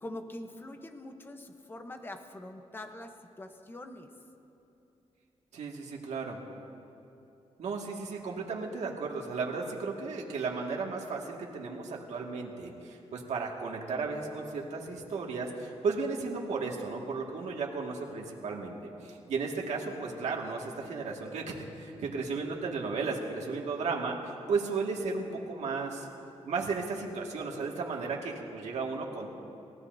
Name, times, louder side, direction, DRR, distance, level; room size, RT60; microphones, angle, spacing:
voice 1, 0.0-4.1, left 1 dB, 20° left, 6 dB, 0.9 m, -44 dB
voice 2, 5.5-6.4 7.6-18.8 19.0-24.2 24.5-26.1 26.5-29.3, right 4 dB, 80° right, -1 dB, 2.0 m, -34 dB
30.0 x 16.0 x 2.7 m, 2.8 s
wide cardioid pair, 165°, 12 cm